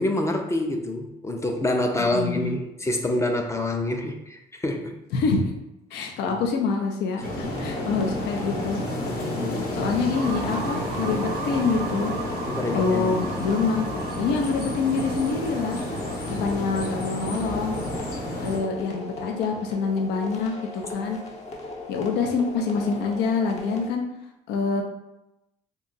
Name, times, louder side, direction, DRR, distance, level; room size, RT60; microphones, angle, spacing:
voice 1, 0.0-4.9 5.9-6.0 7.9-8.0 9.0-9.8 12.4-13.3 16.2-16.5, left 1 dB, 15° left, 3 dB, 0.4 m, -27 dB
voice 2, 2.0-2.6 5.1-5.4 5.9-8.8 9.7-12.1 12.7-13.9 14.2-15.8 16.3-17.8 18.4-21.2 21.9-24.0 24.5-24.8, left 4 dB, 80° left, 2 dB, 0.5 m, -26 dB
sound 1, 7.2-18.6, left 1 dB, 65° left, 0.9 m, -31 dB
sound 2, 7.4-23.9, left 2 dB, 40° left, 0.7 m, -38 dB
sound 3, 10.1-18.0, right 4 dB, 75° right, 0.5 m, -38 dB
2.7 x 2.3 x 3.9 m, 0.91 s
cardioid pair, 110°, 17 cm